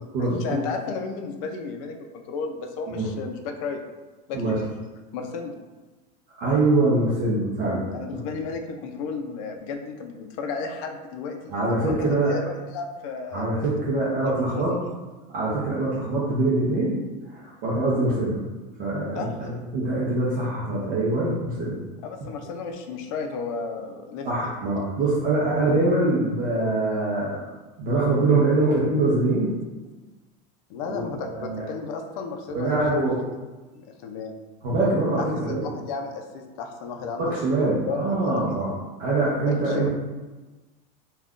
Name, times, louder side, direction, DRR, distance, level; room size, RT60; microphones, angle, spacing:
voice 1, 0.3-3.8 4.3-4.6 5.1-5.6 7.9-12.0 12.3-13.5 14.2-14.9 19.1-19.3 22.0-24.3 30.7-33.2 33.7-34.3 35.2-38.4 39.4-39.9, left 4 dB, 55° left, 4 dB, 0.4 m, -33 dB
voice 2, 6.3-7.9 11.5-12.3 13.3-14.8 15.3-17.0 17.3-18.4 18.8-21.7 24.2-27.4 27.8-29.6 30.9-31.0 31.3-31.6 32.5-33.2 34.6-35.7 37.2-38.7 39.0-39.9, right 2 dB, 45° right, -7 dB, 0.7 m, -23 dB
2.4 x 2.2 x 3.5 m, 1.2 s
supercardioid pair, 165°, 21 cm